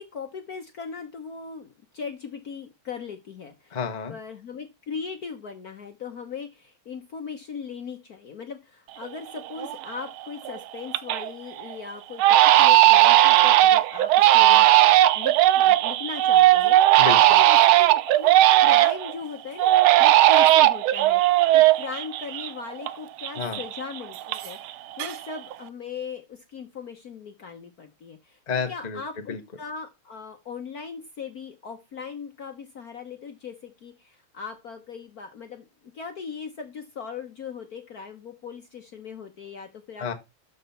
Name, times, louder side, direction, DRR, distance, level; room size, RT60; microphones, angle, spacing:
voice 1, 0.0-3.8 4.1-12.2 12.6-14.7 15.1-16.8 17.3-18.3 18.6-19.7 20.0-21.2 21.5-35.6 35.9-40.1, left 5 dB, 50° left, 1.3 m, -38 dB
voice 2, 3.7-4.1 17.0-17.4 23.3-23.6 28.5-29.0 29.3-29.4 40.0-40.1, left 6 dB, 25° left, 1.1 m, -30 dB
Crying sobbing, 9.0-9.1 9.6-10.0 10.4-11.3 11.6-11.7 12.2-19.1 19.6-22.9 23.2-24.7 25.0-25.5, right 15 dB, 75° right, 1.5 m, -17 dB
12.5 x 4.2 x 5.6 m
omnidirectional pair, 2.4 m